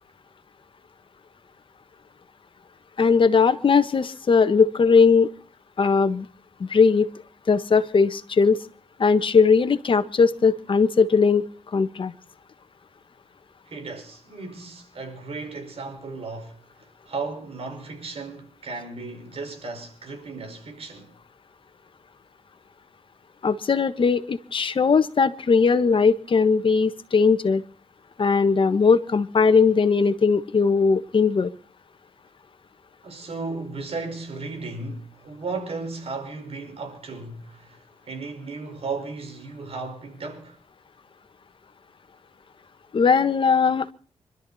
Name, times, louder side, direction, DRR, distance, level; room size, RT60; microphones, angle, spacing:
voice 1, 3.0-5.3 5.8-6.3 6.6-7.1 7.5-8.6 9.0-12.1 23.4-27.6 28.2-31.5 42.9-43.9, left 5 dB, 50° left, 1.4 m, -19 dB
voice 2, 13.7-21.2 33.0-40.6, right 3 dB, 60° right, 5.1 m, -35 dB
26.0 x 13.0 x 4.2 m
cardioid pair, 90°, 11 cm